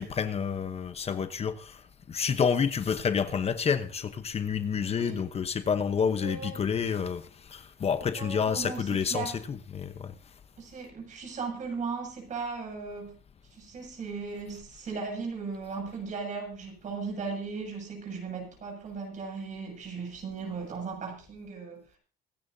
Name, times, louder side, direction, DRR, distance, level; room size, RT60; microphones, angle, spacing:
voice 1, 0.0-10.1, left 6 dB, 35° left, 1.0 m, -29 dB
voice 2, 4.8-5.2 6.1-6.6 8.0-9.4 10.6-13.2 13.5-21.8, right 4 dB, 45° right, 7.4 m, -37 dB
24.5 x 10.5 x 2.8 m
cardioid pair, 110°, 17 cm